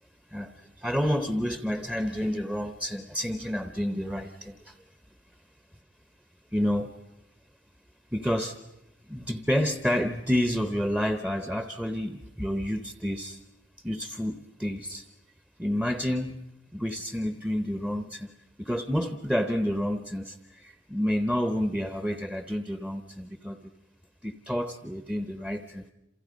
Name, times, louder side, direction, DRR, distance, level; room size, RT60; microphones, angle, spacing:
voice 1, 0.3-4.8 6.5-7.0 8.1-8.6 9.1-13.4 13.8-15.1 15.6-16.4 16.7-18.3 18.6-23.6 24.2-25.8, equal, 5° right, 9 dB, 0.8 m, -29 dB
28.5 x 27.5 x 5.2 m, 0.89 s
head